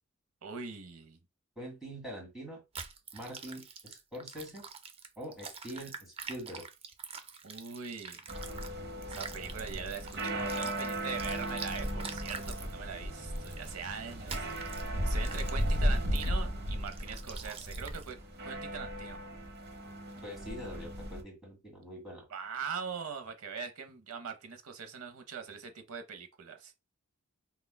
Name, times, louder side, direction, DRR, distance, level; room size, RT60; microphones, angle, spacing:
voice 1, 0.4-1.2 7.4-8.2 9.1-14.5 15.0-18.2 18.4-19.2 22.3-26.7, right 6 dB, 90° right, 0.7 m, -41 dB
voice 2, 1.6-2.6 3.1-4.7 5.2-6.7 20.2-22.2, equal, 5° right, 1.9 m, -44 dB
sound 1, 2.7-8.7 9.0-12.7 13.4-13.7 14.3-14.9 15.2-15.7 16.2-16.3 16.9-18.1, right 5 dB, 25° right, 0.4 m, -45 dB
sound 2, 8.3-21.2, equal, 50° right, 0.8 m, -35 dB
5.6 x 2.3 x 2.2 m
head